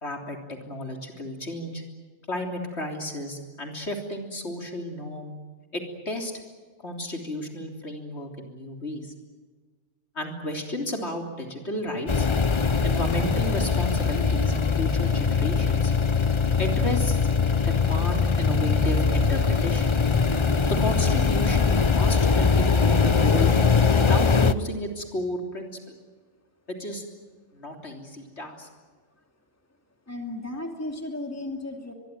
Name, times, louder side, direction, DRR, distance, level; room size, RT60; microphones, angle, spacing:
voice 1, 0.0-1.8 2.3-5.3 5.7-6.3 6.8-9.1 10.2-12.3 12.8-15.9 16.6-17.2 17.7-20.0 20.7-23.8 24.1-25.7 26.7-27.1 27.5-28.7, left 1 dB, 60° left, 3 dB, 3.8 m, -32 dB
sound 1, 12.1-24.5, left 5 dB, 30° left, 0.7 m, -22 dB
voice 2, 30.1-31.9, left 2 dB, 10° left, 3 dB, 2.7 m, -34 dB
24.5 x 22.5 x 9.3 m, 1.4 s
omnidirectional pair, 1.2 m